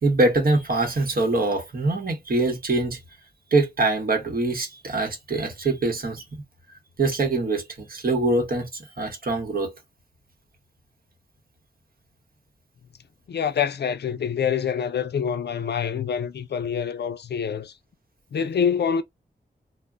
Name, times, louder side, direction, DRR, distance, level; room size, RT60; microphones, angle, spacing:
voice 1, 0.0-3.0 3.5-6.4 7.0-9.7, right 2 dB, 55° right, 1.0 m, -24 dB
voice 2, 13.3-17.7 18.3-19.0, left 7 dB, 75° left, 0.4 m, -26 dB
2.1 x 2.0 x 3.4 m
wide cardioid pair, 75°, 18 cm